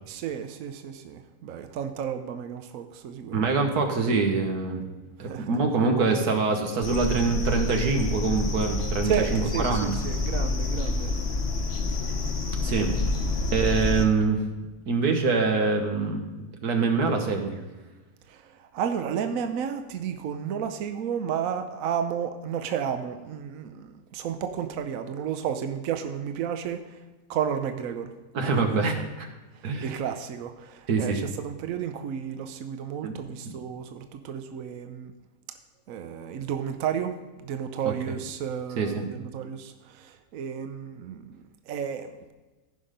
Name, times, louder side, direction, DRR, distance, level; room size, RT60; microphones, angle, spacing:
voice 1, 0.1-3.6 5.2-5.6 9.0-11.1 18.3-27.0 27.3-28.1 28.4-28.8 29.5-35.1 35.9-42.3, right 8 dB, 65° right, 7 dB, 1.1 m, -32 dB
voice 2, 3.3-4.8 5.2-9.9 12.6-13.0 13.5-14.4 14.9-16.3 16.6-17.5 28.3-29.3 29.6-29.9 30.9-31.2 33.0-33.1 33.5-33.6 38.8-39.1, right 4 dB, 90° right, 4 dB, 1.8 m, -25 dB
sound 1, 6.8-14.1, left 3 dB, 45° left, 1.1 m, -28 dB
15.0 x 5.7 x 5.1 m, 1.2 s
omnidirectional pair, 1.6 m